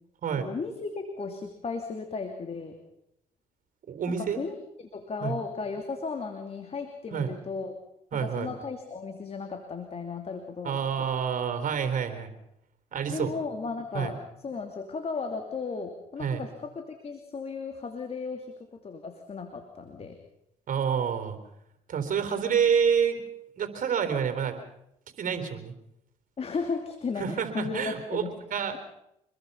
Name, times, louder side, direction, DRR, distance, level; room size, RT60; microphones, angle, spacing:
voice 1, 0.4-2.8 4.2-7.8 8.1-11.1 13.1-20.2 26.4-28.3, left 4 dB, 45° left, 5 dB, 2.8 m, -35 dB
voice 2, 3.9-4.4 5.2-5.4 7.1-7.3 8.1-8.5 10.6-12.3 12.9-13.4 13.9-14.1 16.2-16.4 20.7-21.4 21.9-23.2 23.6-24.6 25.2-25.7 27.2-28.2 28.5-28.8, right 7 dB, 65° right, 8 dB, 3.8 m, -28 dB
26.0 x 21.5 x 5.6 m, 0.81 s
supercardioid pair, 70°, 15 cm